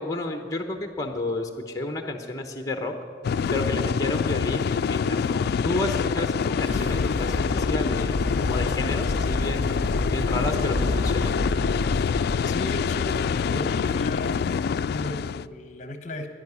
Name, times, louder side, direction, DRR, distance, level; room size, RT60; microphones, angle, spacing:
voice 1, 0.0-2.9 3.5-11.3, left 2 dB, 20° left, 5 dB, 1.0 m, -31 dB
sound 1, 3.2-15.5, left 6 dB, 60° left, 0.3 m, -26 dB
sound 2, 6.6-12.5, left 1 dB, 55° right, 3.2 m, -30 dB
voice 2, 12.4-14.4 14.9-16.3, left 1 dB, 45° left, 8 dB, 1.1 m, -35 dB
10.5 x 10.5 x 9.5 m, 2.1 s
head